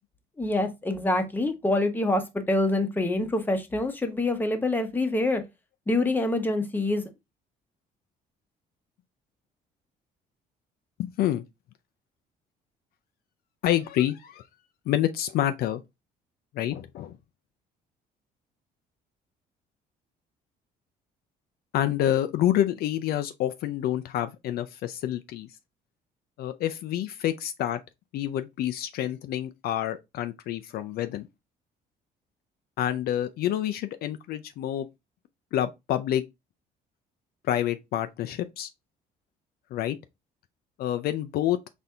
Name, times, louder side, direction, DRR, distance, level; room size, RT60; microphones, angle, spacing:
voice 1, 0.4-5.4 5.9-7.1, left 2 dB, 10° left, 0.8 m, -26 dB
voice 2, 11.0-11.4 13.6-14.5 14.9-15.8 16.5-17.2 21.7-25.5 26.4-27.8 28.1-31.3 32.8-34.9 35.5-36.2 37.5-38.7 39.7-40.0 40.8-41.6, left 12 dB, 65° left, 0.4 m, -28 dB
4.2 x 2.6 x 3.4 m
cardioid pair, 110°, 17 cm